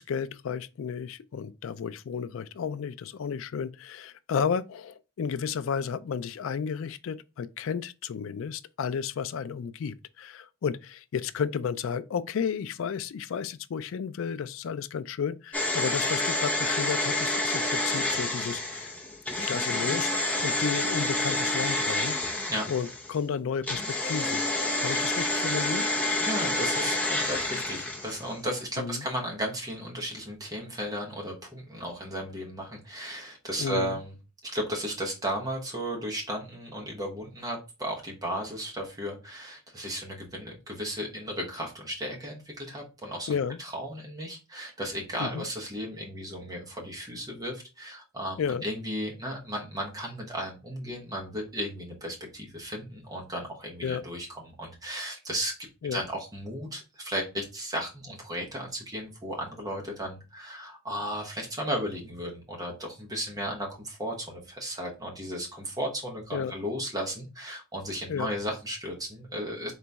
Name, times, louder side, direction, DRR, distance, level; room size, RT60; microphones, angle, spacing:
voice 1, 0.0-18.9 19.4-24.4 24.8-25.9 28.8-29.1 33.6-34.0 43.3-43.6 45.2-45.5 48.4-48.7 53.8-54.0 55.8-56.0 66.3-66.5 68.1-68.3, left 6 dB, 65° left, 0.3 m, -32 dB
sound 1, 15.5-23.1 23.6-28.3 28.6-28.7, left 2 dB, 5° left, 0.6 m, -28 dB
voice 2, 26.2-34.1 34.4-55.5 55.9-69.7, equal, 15° right, 1.0 m, -35 dB
4.0 x 3.0 x 3.4 m
head